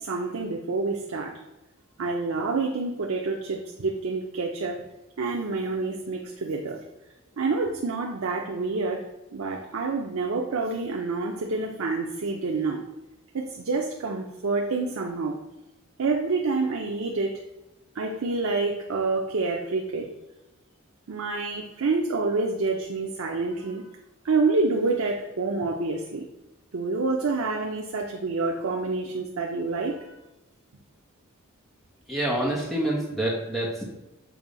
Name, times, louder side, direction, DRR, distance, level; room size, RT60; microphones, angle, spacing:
voice 1, 0.0-1.3 2.0-4.8 5.2-6.8 7.4-9.0 9.3-12.8 13.3-15.4 16.0-17.4 18.0-20.1 21.1-23.8 24.2-26.2 26.7-30.1, right 3 dB, 85° right, 1 dB, 0.6 m, -27 dB
voice 2, 32.1-33.8, right 1 dB, ahead, -4 dB, 1.2 m, -27 dB
7.1 x 2.7 x 5.1 m, 1.0 s
head